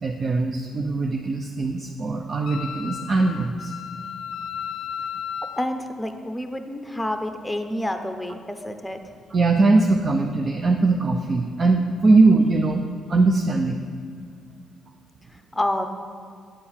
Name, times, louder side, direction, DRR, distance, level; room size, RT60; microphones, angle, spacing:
voice 1, 0.0-3.7 9.3-13.8, right 3 dB, 40° right, 3 dB, 0.5 m, -21 dB
Wind instrument woodwind instrument, 2.5-5.7, left 8 dB, 70° left, 0.5 m, -34 dB
voice 2, 5.6-9.0 15.3-15.9, left 1 dB, 5° left, 6 dB, 0.7 m, -28 dB
8.6 x 4.6 x 7.2 m, 2.1 s
cardioid pair, 90°, 0 cm